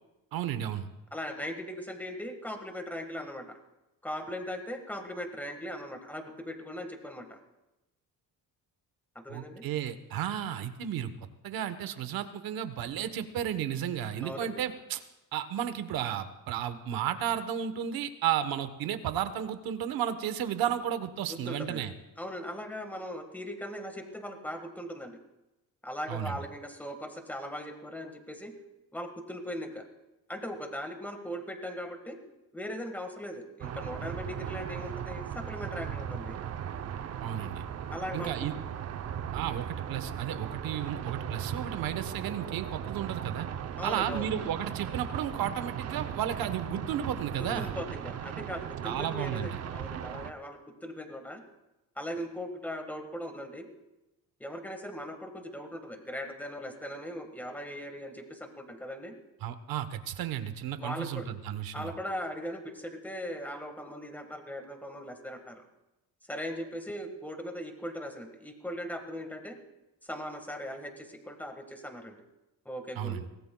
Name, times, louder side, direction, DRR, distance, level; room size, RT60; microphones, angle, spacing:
voice 1, 0.3-0.9 9.3-11.1 11.4-15.0 15.3-21.9 26.1-26.4 37.2-37.6 38.1-38.5 39.3-43.5 43.8-47.7 48.8-49.5 59.4-61.9 72.9-73.3, right 10 dB, 80° right, 10 dB, 1.1 m, -33 dB
voice 2, 1.1-3.6 4.0-7.4 9.1-9.6 14.2-14.5 21.5-21.8 22.2-25.2 25.8-28.5 28.9-29.9 30.3-32.2 32.5-36.4 37.9-38.3 43.8-44.3 47.4-51.4 52.0-53.7 54.4-59.1 60.8-61.3 61.7-65.6 66.3-69.5 70.0-72.2 72.6-73.2, equal, 5° left, 5 dB, 1.6 m, -39 dB
sound 1, 33.6-50.3, right 9 dB, 45° right, 0.7 m, -38 dB
23.5 x 18.0 x 2.3 m, 0.97 s
cardioid pair, 135°, 35 cm